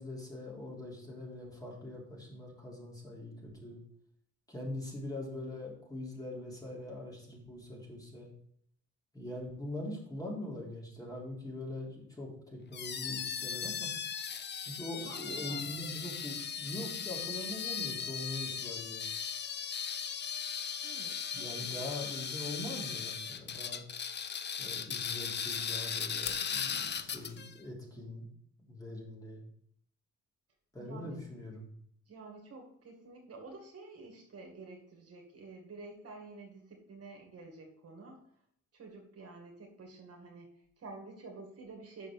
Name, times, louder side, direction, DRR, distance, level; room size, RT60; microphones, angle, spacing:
voice 1, 0.0-3.8 4.5-8.3 9.1-13.9 14.7-19.0 21.3-23.8 24.6-28.3 28.7-29.4 30.7-31.7, left 1 dB, 10° left, -3 dB, 3.3 m, -42 dB
sound 1, 12.7-27.5, left 7 dB, 35° left, 0.6 m, -38 dB
voice 2, 15.0-15.8 20.8-21.9 24.1-24.2 30.8-31.2 32.1-38.2 38.7-42.1, right 3 dB, 55° right, 1 dB, 2.2 m, -50 dB
Fire, 26.2-27.4, left 10 dB, 90° left, 1.0 m, -46 dB
6.4 x 5.1 x 6.2 m, 0.68 s
cardioid pair, 90°, 30 cm